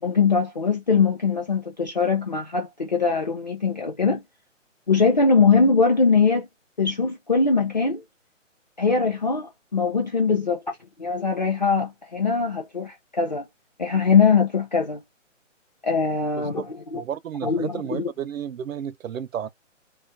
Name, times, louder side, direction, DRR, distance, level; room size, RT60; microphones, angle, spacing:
voice 1, 0.0-4.2 4.9-6.5 6.8-8.0 8.8-10.6 11.0-13.5 13.8-15.0 15.8-16.6 16.9-17.0 17.4-18.1, left 5 dB, 35° left, 0.5 m, -21 dB
voice 2, 16.9-19.5, right 9 dB, 85° right, 0.6 m, -32 dB
2.5 x 2.4 x 2.6 m
hypercardioid pair, 165°, 39 cm